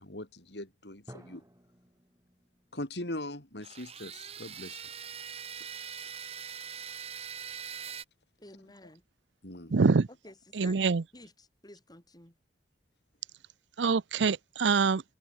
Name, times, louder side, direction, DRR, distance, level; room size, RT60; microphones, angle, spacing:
voice 1, 0.0-1.4 2.7-4.8 5.6-5.7 5.9-6.1 9.4-9.7, left 1 dB, 65° left, 4.5 m, -41 dB
Drum, 1.1-4.8, equal, 15° right, 7.3 m, -57 dB
sound 1, 3.6-8.0, right 8 dB, 35° right, 1.3 m, -42 dB
voice 2, 8.4-9.0 10.2-10.8 11.1-12.3, left 1 dB, 20° left, 4.9 m, -52 dB
voice 3, 9.7-10.1 10.6-11.0 13.8-15.0, right 4 dB, 85° right, 0.6 m, -25 dB
head